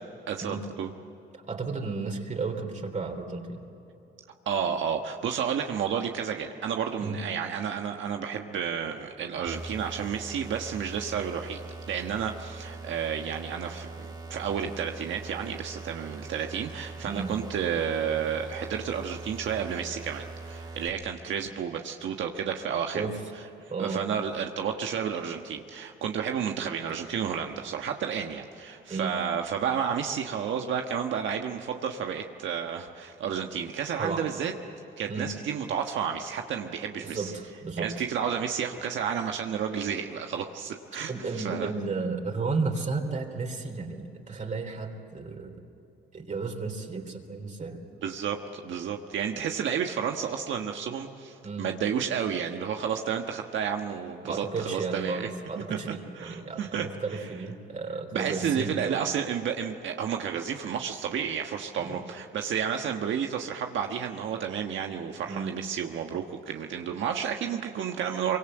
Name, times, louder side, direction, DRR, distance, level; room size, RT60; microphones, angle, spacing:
voice 1, 0.3-0.9 4.4-11.6 11.9-23.0 23.8-34.5 35.0-37.3 37.8-41.1 41.4-41.7 48.0-55.3 55.7-55.8 56.2-56.9 58.1-68.4, right 7 dB, 70° right, 3 dB, 1.4 m, -31 dB
voice 2, 1.3-3.6 7.0-7.2 17.0-17.3 22.9-23.2 23.7-24.1 28.9-29.2 34.0-34.3 35.1-35.3 37.0-37.9 41.1-45.6 46.1-47.8 51.4-51.7 54.2-59.0 61.8-62.0 65.3-65.5, right 4 dB, 40° right, 3 dB, 3.5 m, -33 dB
sound 1, 9.5-20.9, right 3 dB, 20° right, 2.6 m, -42 dB
24.0 x 24.0 x 7.9 m, 3.0 s
cardioid pair, 90°, 20 cm